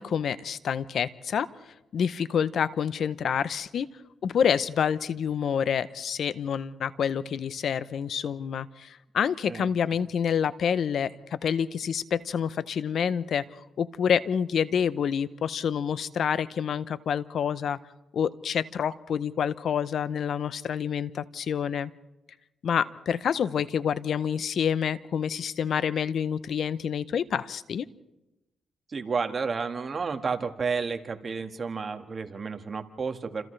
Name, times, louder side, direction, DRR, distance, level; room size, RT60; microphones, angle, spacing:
voice 1, 0.0-1.5 1.9-3.9 4.2-13.4 13.8-17.8 18.1-21.9 22.6-27.9, left 7 dB, 65° left, 15 dB, 0.7 m, -28 dB
voice 2, 28.9-33.4, right 5 dB, 40° right, 6 dB, 1.7 m, -31 dB
29.0 x 27.0 x 3.3 m, 0.98 s
cardioid pair, 80°, 0 cm